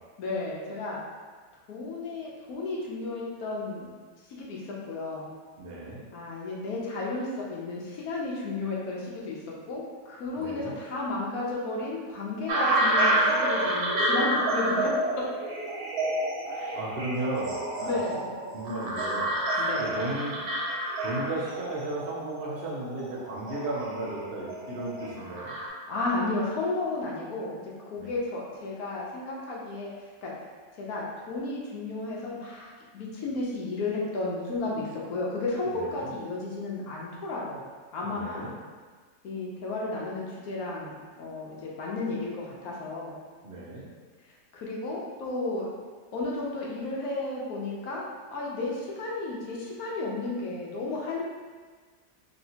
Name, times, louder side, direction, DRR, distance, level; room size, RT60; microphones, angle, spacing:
voice 1, 0.2-1.0 1.7-3.9 4.3-5.3 6.1-9.4 9.7-14.9 16.6-16.8 17.8-18.3 19.6-19.9 25.5-29.9 30.2-30.3 30.8-32.7 32.9-37.6 37.9-38.5 39.2-43.2 44.5-45.7 46.1-51.2, left 2 dB, 80° left, -4 dB, 1.2 m, -33 dB
voice 2, 5.6-6.0 10.4-10.7 16.5-18.2 18.5-20.4 21.0-25.5 28.0-28.1 35.7-36.1 38.1-38.5 43.4-43.9, right 2 dB, 50° right, -5 dB, 0.8 m, -35 dB
sound 1, 12.5-25.7, right 1 dB, 85° right, 1.2 m, -29 dB
3.2 x 2.8 x 2.7 m, 1.5 s
omnidirectional pair, 1.6 m